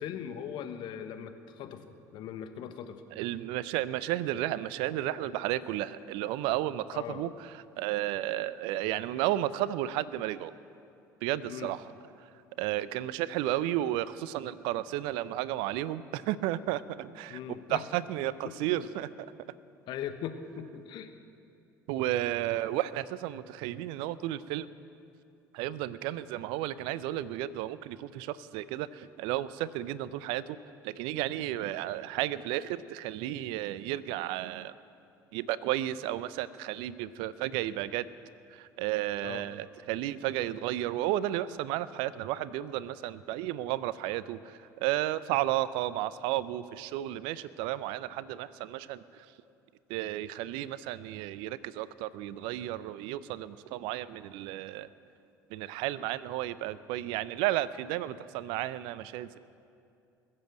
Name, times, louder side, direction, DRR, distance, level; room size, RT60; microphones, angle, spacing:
voice 1, 0.0-3.0 6.9-7.2 11.5-11.8 17.3-17.8 18.4-18.6 19.9-21.1 39.2-39.4, left 9 dB, 60° left, 8 dB, 1.1 m, -40 dB
voice 2, 3.1-7.5 7.8-10.5 11.2-11.9 12.6-17.4 17.7-19.1 21.9-24.7 25.5-30.6 30.8-34.7 35.3-38.1 38.5-49.3 49.9-54.9 55.5-59.4, right 14 dB, 65° right, 17 dB, 0.5 m, -33 dB
20.5 x 7.6 x 7.9 m, 2.6 s
hypercardioid pair, 60°, 9 cm